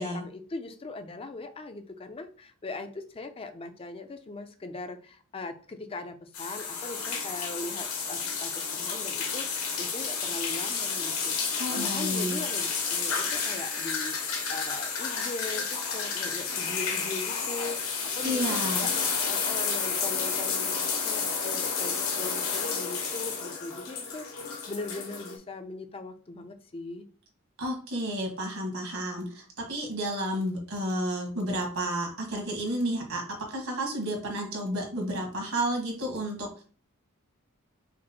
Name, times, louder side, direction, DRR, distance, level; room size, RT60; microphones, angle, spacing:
voice 1, 0.0-14.2 14.5-18.9 19.3-27.0, left 3 dB, 25° left, 9 dB, 0.4 m, -40 dB
sound 1, 6.3-25.4, left 5 dB, 75° left, 1.2 m, -31 dB
voice 2, 11.6-12.4 18.2-18.9 27.6-33.2 33.5-36.6, right 1 dB, 70° right, 1 dB, 1.6 m, -31 dB
5.1 x 2.0 x 4.2 m, 0.41 s
head